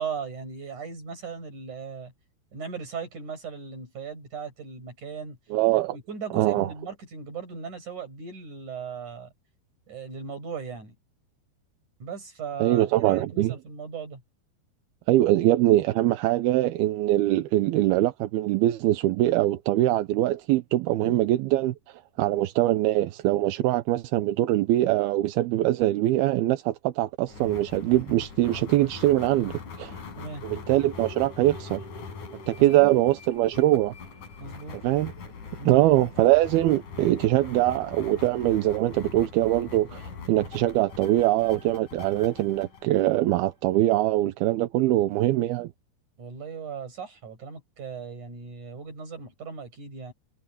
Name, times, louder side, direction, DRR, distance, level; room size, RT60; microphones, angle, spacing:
voice 1, 0.0-2.1 2.5-5.4 5.9-9.3 9.9-10.9 12.0-14.2 21.0-21.2 30.2-30.4 32.6-32.9 34.4-34.8 35.6-35.8 46.2-50.1, right 5 dB, 50° right, 8.1 m, -37 dB
voice 2, 5.5-6.0 6.3-6.7 12.6-13.6 15.1-21.7 22.2-29.9 30.4-31.8 32.5-33.9 34.7-35.1 35.7-45.7, right 15 dB, 80° right, 2.7 m, -23 dB
sound 1, 27.3-43.8, left 5 dB, 55° left, 5.2 m, -42 dB
omnidirectional pair, 4.6 m